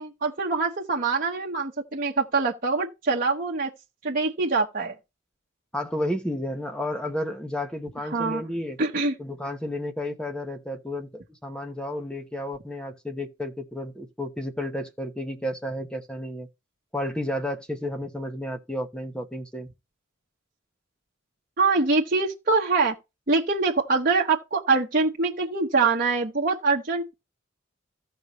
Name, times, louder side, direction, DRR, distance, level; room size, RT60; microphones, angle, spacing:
voice 1, 0.0-3.7 4.0-4.9 8.1-8.4 8.8-9.1 21.6-22.9 23.3-27.1, right 3 dB, 45° right, 1.1 m, -24 dB
voice 2, 5.7-8.8 9.2-16.5 16.9-19.7, left 1 dB, 5° left, 0.9 m, -32 dB
15.5 x 5.4 x 3.0 m
head